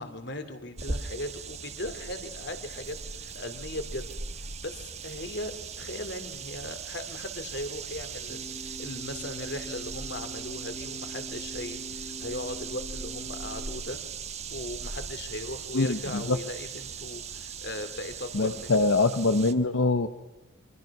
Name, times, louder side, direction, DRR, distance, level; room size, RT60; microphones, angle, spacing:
voice 1, 0.0-4.1 4.4-14.0 14.5-18.9, left 1 dB, 55° left, 9 dB, 2.6 m, -38 dB
sound 1, 0.8-19.5, right 6 dB, 30° right, 1.2 m, -39 dB
sound 2, 8.3-13.8, left 1 dB, ahead, 2.4 m, -44 dB
voice 2, 15.7-16.4 18.3-20.1, left 3 dB, 75° left, 9 dB, 1.0 m, -24 dB
28.5 x 24.0 x 6.0 m, 1.1 s
head